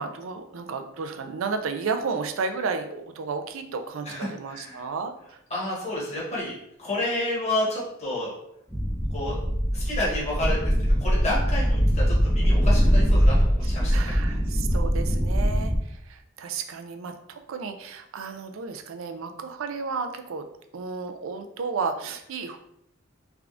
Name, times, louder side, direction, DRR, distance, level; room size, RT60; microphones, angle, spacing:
voice 1, 0.0-5.4 13.6-20.5 20.7-22.6, right 4 dB, 75° right, 7 dB, 0.4 m, -33 dB
voice 2, 4.0-4.8 5.5-8.3 9.1-9.4 9.7-10.7 11.0-14.4, left 1 dB, 35° left, -6 dB, 1.3 m, -30 dB
sound 1, 8.7-15.8, equal, 5° right, 0.5 m, -22 dB
3.5 x 3.4 x 2.4 m, 0.76 s
head